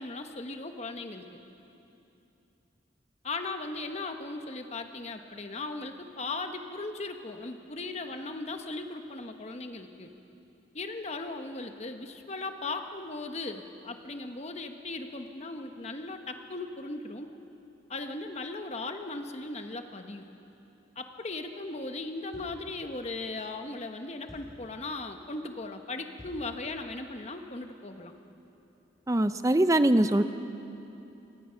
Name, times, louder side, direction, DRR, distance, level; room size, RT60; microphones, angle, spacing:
voice 1, 0.0-1.4 3.2-10.1 10.7-17.3 17.9-20.3 21.0-28.1, left 2 dB, 35° left, 6 dB, 1.0 m, -38 dB
sound 1, 22.3-22.8 24.3-24.7 26.2-26.6, equal, ahead, 6.9 m, -49 dB
voice 2, 29.1-30.2, right 1 dB, 15° right, 11 dB, 0.5 m, -22 dB
26.0 x 18.5 x 5.7 m, 2.9 s
head